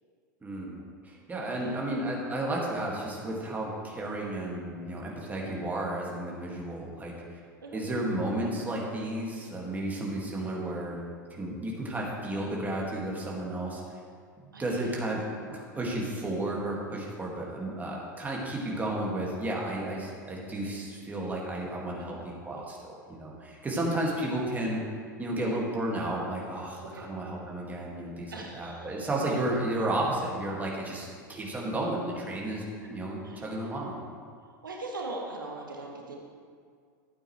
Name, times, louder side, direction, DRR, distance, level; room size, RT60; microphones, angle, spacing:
voice 1, 0.4-0.8 1.0-7.1 7.7-11.0 11.3-14.0 14.4-24.8 25.2-33.9, right 1 dB, 15° right, -3 dB, 2.2 m, -33 dB
voice 2, 1.5-1.9 7.6-7.9 14.5-15.0 21.9-22.2 22.5-22.6 25.4-25.6 26.8-27.2 28.3-29.1 32.8-32.9 33.2-33.5 34.4-36.2, right 2 dB, 85° right, 0 dB, 1.1 m, -41 dB
12.0 x 8.7 x 3.3 m, 2.1 s
hypercardioid pair, 85°, 11 cm